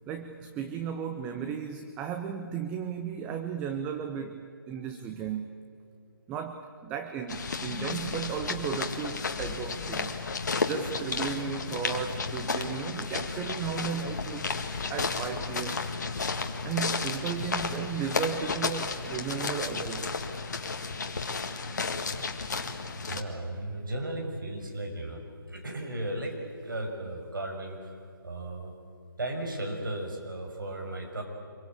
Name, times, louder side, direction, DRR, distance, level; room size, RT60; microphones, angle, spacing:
voice 1, 0.1-5.6 6.3-10.2 10.6-14.6 14.9-15.9 16.6-20.2, right 7 dB, 10° right, 7 dB, 0.6 m, -35 dB
sound 1, 7.3-23.2, left 4 dB, 50° left, 2.0 m, -33 dB
voice 2, 23.0-26.4 26.6-28.7 29.2-31.2, right 1 dB, 65° right, 3 dB, 6.0 m, -36 dB
25.5 x 23.0 x 8.7 m, 2.5 s
figure-of-eight pair, 155°, 12 cm